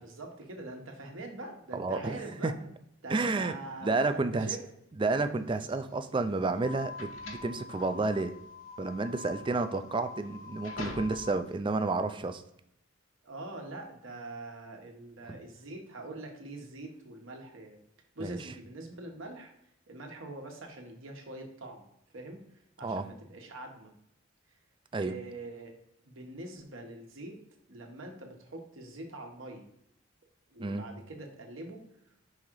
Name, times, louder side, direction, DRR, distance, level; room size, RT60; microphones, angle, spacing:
voice 1, 0.0-2.5 3.0-4.6 7.9-8.1 13.2-17.8 18.1-19.5 19.9-21.8 22.1-22.4 22.8-23.9 25.0-25.7 26.0-27.4 27.7-29.7 30.5-31.8, right 2 dB, 75° right, 2 dB, 1.3 m, -44 dB
voice 2, 1.7-2.2 2.4-2.5 3.1-3.5 3.8-4.5 5.0-8.3 8.8-12.4 15.3-15.4 18.2-18.4 22.8-23.1 24.9-25.1 30.6-30.9, right 3 dB, 25° right, 9 dB, 0.4 m, -30 dB
sound 1, 5.6-11.6, left 2 dB, 70° left, 1.1 m, -46 dB
sound 2, 6.5-11.5, left 5 dB, 35° left, 0.6 m, -46 dB
5.6 x 3.8 x 4.6 m, 0.76 s
head